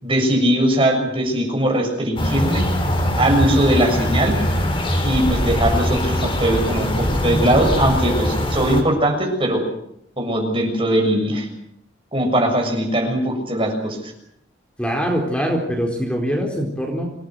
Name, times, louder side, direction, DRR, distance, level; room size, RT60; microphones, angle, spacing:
voice 1, 0.0-2.7 3.2-4.4 5.0-9.7 10.2-11.5 12.1-14.1, right 1 dB, 30° right, 3 dB, 7.0 m, -20 dB
sound 1, 2.2-8.8, equal, 30° left, 4.9 m, -21 dB
voice 2, 14.8-17.0, equal, 5° left, 1 dB, 4.3 m, -23 dB
27.5 x 19.0 x 8.0 m, 0.73 s
head